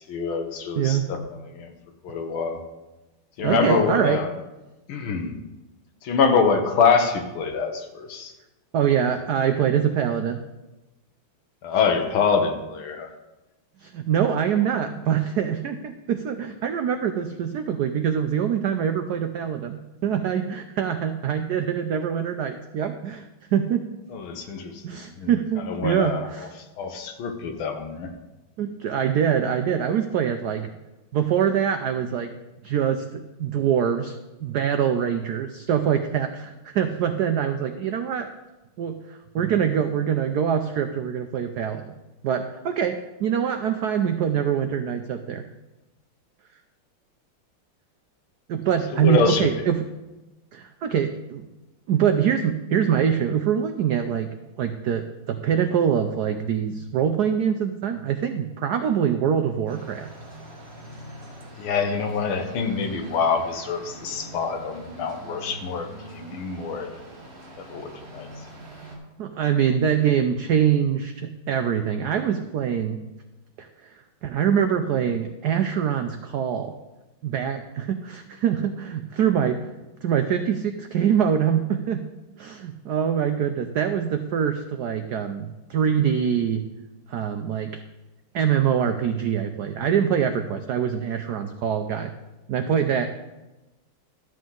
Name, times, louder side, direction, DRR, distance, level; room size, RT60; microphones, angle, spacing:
voice 1, 0.1-1.7 2.0-2.6 3.4-4.3 4.9-5.3 6.0-8.3 9.0-9.1 11.6-13.1 24.1-25.3 25.7-26.3 26.8-28.1 48.9-49.5 61.6-66.9 67.6-68.3, left 5 dB, 75° left, 5 dB, 1.8 m, -25 dB
voice 2, 0.8-1.1 3.4-4.2 8.7-10.4 13.8-23.9 24.8-26.5 28.6-30.7 31.1-32.3 32.6-34.2 34.4-38.3 38.8-41.9 42.2-45.4 48.5-49.8 50.5-51.5 51.9-54.3 54.6-60.1 69.2-73.0 73.6-73.9 74.2-76.7 77.2-79.6 80.0-82.0 82.4-86.6 87.1-87.8 88.3-92.1 92.5-93.1, right 8 dB, 90° right, 7 dB, 0.8 m, -24 dB
sound 1, 59.7-69.0, right 1 dB, 30° right, 2.0 m, -43 dB
12.5 x 7.7 x 3.8 m, 1.1 s
omnidirectional pair, 2.4 m